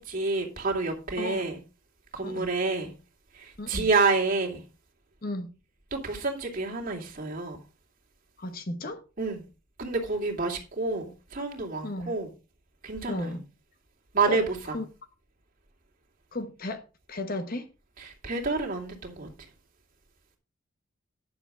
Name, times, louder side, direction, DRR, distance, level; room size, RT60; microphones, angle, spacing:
voice 1, 0.0-1.6 2.1-2.9 3.3-4.6 5.9-7.6 9.2-9.5 9.8-12.3 12.8-13.4 14.1-14.8 18.0-19.5, right 3 dB, 40° right, 2.5 m, -29 dB
voice 2, 8.4-9.0 11.8-12.1 13.1-13.4 14.3-14.4 14.7-14.8 16.3-16.8 17.1-17.7, left 2 dB, 45° left, 1.1 m, -34 dB
9.9 x 7.1 x 5.0 m
head